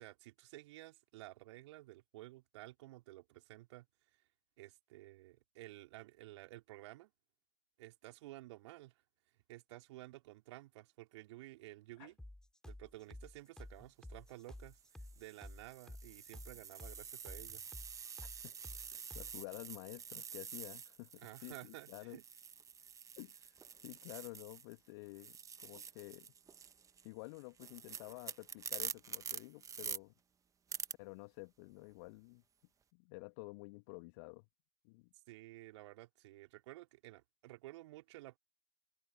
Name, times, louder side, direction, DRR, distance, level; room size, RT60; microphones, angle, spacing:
voice 1, 0.0-3.9 4.6-7.1 7.8-9.0 9.5-12.2 12.7-14.8 15.2-17.6 21.2-22.2 35.3-38.4, right 18 dB, 55° right, 4.4 m, -53 dB
sound 1, 12.2-19.4, left 1 dB, 5° left, 7.8 m, -52 dB
sound 2, 13.6-13.9 14.6-24.8 25.1-30.0 30.7-30.9, right 7 dB, 20° right, 1.4 m, -48 dB
voice 2, 18.4-18.9 19.1-22.2 23.2-23.5 23.8-26.3 27.0-30.1 31.0-32.4 32.9-34.5 34.8-35.1, left 28 dB, 45° left, 2.2 m, -51 dB
figure-of-eight pair, 90°, 18 cm